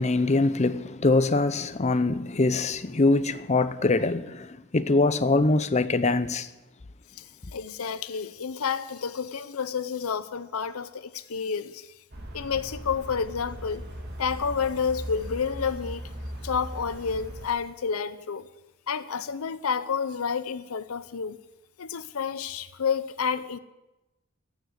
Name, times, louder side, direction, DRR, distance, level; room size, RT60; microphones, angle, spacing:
voice 1, 0.0-6.5, left 3 dB, 30° left, 0.6 m, -23 dB
voice 2, 7.2-11.9 12.3-13.8 14.2-16.1 16.4-18.5 18.9-21.4 21.8-23.6, left 6 dB, 90° left, 0.6 m, -30 dB
sound 1, 12.1-17.5, equal, 50° right, 2.3 m, -39 dB
15.5 x 7.3 x 9.4 m
head